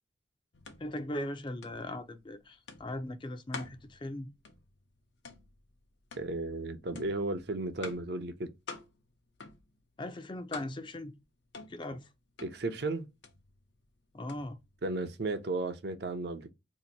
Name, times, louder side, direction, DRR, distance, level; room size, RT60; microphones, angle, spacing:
sound 1, 0.5-15.7, left 4 dB, 80° left, 0.8 m, -50 dB
voice 1, 0.8-4.3 10.0-11.1 11.7-12.1 14.1-14.6, left 1 dB, 25° left, 0.5 m, -39 dB
voice 2, 6.2-8.5 12.4-13.1 14.8-16.5, right 2 dB, 60° right, 0.6 m, -34 dB
2.8 x 2.6 x 4.0 m
head